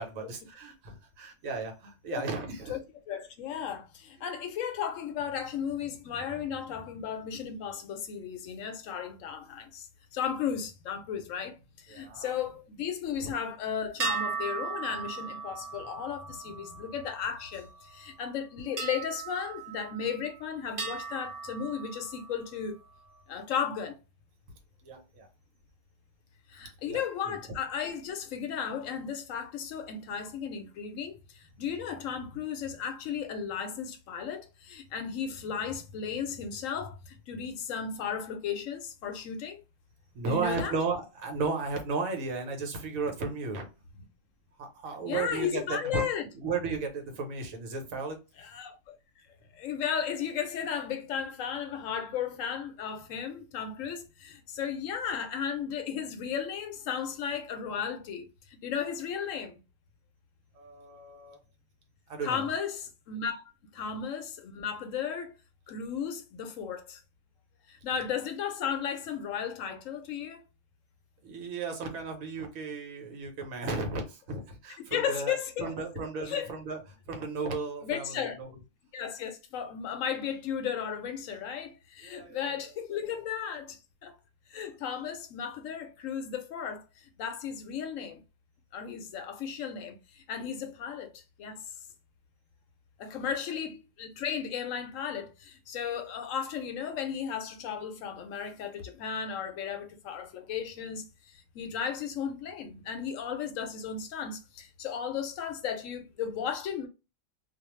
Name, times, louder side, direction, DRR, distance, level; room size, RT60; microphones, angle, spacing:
voice 1, 0.0-2.8 11.9-12.4 13.2-13.3 24.8-25.3 26.9-27.4 40.1-43.7 44.6-48.2 60.5-61.4 62.1-62.5 71.2-75.3 75.6-78.6 82.0-82.6 83.0-83.1 93.1-93.2, right 4 dB, 75° right, 1.2 m, -35 dB
voice 2, 3.1-22.8 23.3-24.0 26.5-39.6 40.3-40.7 45.1-46.2 48.4-48.9 49.5-59.6 62.2-65.4 65.7-67.0 67.7-70.4 74.9-75.7 76.3-76.5 77.8-78.4 78.9-84.2 84.5-88.2 88.7-91.7 93.0-106.9, left 7 dB, 70° left, 0.9 m, -35 dB
sound 1, 14.0-17.7 18.8-20.3 20.8-22.5, right 5 dB, 50° right, 0.8 m, -37 dB
2.5 x 2.3 x 3.0 m
omnidirectional pair, 1.4 m